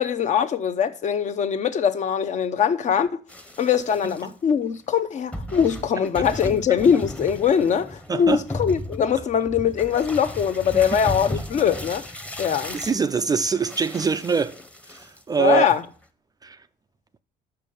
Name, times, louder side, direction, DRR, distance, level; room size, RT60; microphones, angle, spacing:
voice 1, 0.0-3.1 3.6-12.1 12.4-12.8 15.4-15.8, left 8 dB, 45° left, 0.7 m, -22 dB
sound 1, 3.3-4.3 5.0-5.1 5.3-15.4 15.7-16.0, left 1 dB, 5° left, 0.8 m, -35 dB
voice 2, 8.1-8.4 10.7-11.0 12.7-14.6 14.9-15.7 16.4-16.6, right 5 dB, 25° right, 0.3 m, -23 dB
6.9 x 5.6 x 5.3 m
cardioid pair, 110°, 17 cm